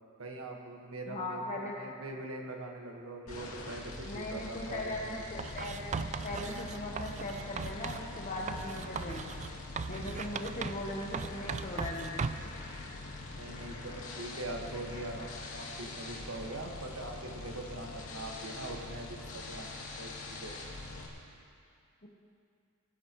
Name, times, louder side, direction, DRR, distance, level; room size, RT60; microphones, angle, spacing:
voice 1, 0.2-1.4 1.8-4.9 13.4-20.5, right 2 dB, 75° right, 1 dB, 1.6 m, -42 dB
voice 2, 1.1-1.8 4.0-9.3 9.9-12.2 22.0-22.1, left 1 dB, 35° left, -2 dB, 1.0 m, -39 dB
sound 1, 3.3-21.1, left 2 dB, 85° left, 2.5 m, -44 dB
Writing, 5.4-8.1 8.5-10.9 11.1-12.5, right 5 dB, 35° right, 0.3 m, -38 dB
sound 2, 5.7-15.4, left 1 dB, 65° left, 3.4 m, -51 dB
20.5 x 12.5 x 3.1 m, 2.4 s
head